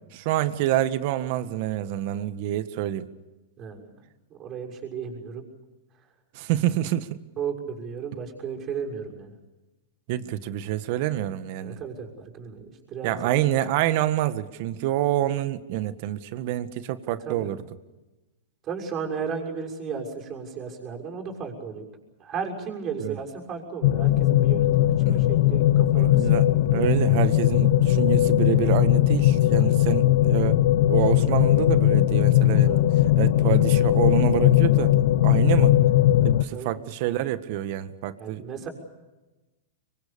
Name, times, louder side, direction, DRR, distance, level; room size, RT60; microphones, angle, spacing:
voice 1, 0.1-3.1 6.3-7.2 10.1-11.8 13.0-17.7 23.0-23.2 25.1-25.3 25.9-30.6 30.9-32.8 33.2-35.0 35.2-35.7 36.2-38.4, right 13 dB, 50° right, 12 dB, 1.7 m, -27 dB
voice 2, 3.6-3.9 4.3-5.5 7.4-9.3 11.6-13.4 17.1-17.5 18.6-21.8 22.2-26.8 29.5-29.8 32.4-32.9 36.5-36.7 38.2-38.7, right 6 dB, 30° right, 2 dB, 6.4 m, -35 dB
sound 1, 23.8-36.4, left 13 dB, 65° left, 1.0 m, -19 dB
25.0 x 24.5 x 6.9 m, 1.1 s
hypercardioid pair, 135°, 0 cm